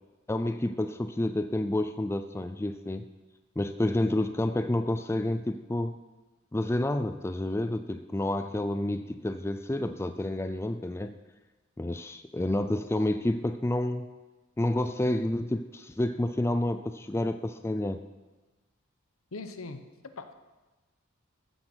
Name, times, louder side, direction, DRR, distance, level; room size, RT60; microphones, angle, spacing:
voice 1, 0.3-3.1 3.6-6.0 6.5-11.2 11.8-14.1 14.6-18.0, left 1 dB, 10° left, 9 dB, 0.4 m, -29 dB
voice 2, 19.3-19.8 20.2-20.3, left 3 dB, 75° left, 9 dB, 1.0 m, -40 dB
15.0 x 8.0 x 6.3 m, 1.2 s
head